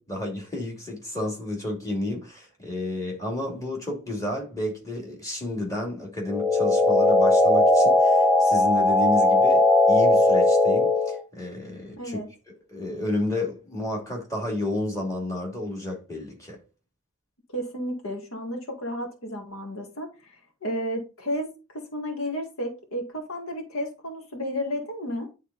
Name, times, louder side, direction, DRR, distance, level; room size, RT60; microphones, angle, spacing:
voice 1, 0.0-12.2 12.7-16.6, left 1 dB, 15° left, 2.4 m, -31 dB
sound 1, 6.3-11.2, left 2 dB, ahead, 0.5 m, -19 dB
voice 2, 12.0-12.3 17.5-25.3, equal, 75° left, 1.8 m, -32 dB
9.9 x 3.6 x 4.0 m
head